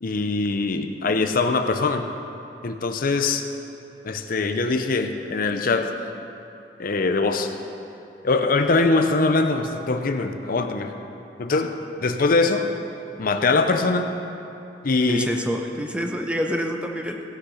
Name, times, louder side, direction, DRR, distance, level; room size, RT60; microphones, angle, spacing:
voice 1, 0.0-2.1 2.6-3.4 4.0-5.9 6.8-7.5 8.2-10.9 11.4-12.7 13.2-14.1 14.8-15.3, left 3 dB, 55° left, 7 dB, 0.6 m, -22 dB
voice 2, 15.1-17.2, equal, 5° right, 3 dB, 0.7 m, -27 dB
16.5 x 6.7 x 5.6 m, 2.9 s
head